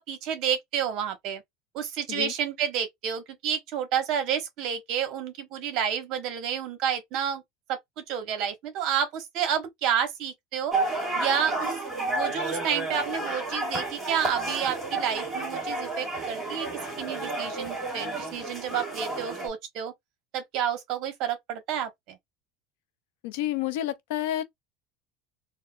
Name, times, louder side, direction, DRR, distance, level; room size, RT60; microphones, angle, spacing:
voice 1, 0.0-1.4 1.7-7.4 7.7-7.8 8.1-10.7 11.2-16.7 17.0-19.9 20.3-22.2, right 8 dB, 50° right, 1.1 m, -30 dB
sound 1, 10.7-19.5, right 2 dB, 5° right, 2.0 m, -31 dB
voice 2, 23.2-24.4, left 13 dB, 75° left, 0.6 m, -29 dB
4.2 x 2.1 x 2.2 m
cardioid pair, 155°, 0 cm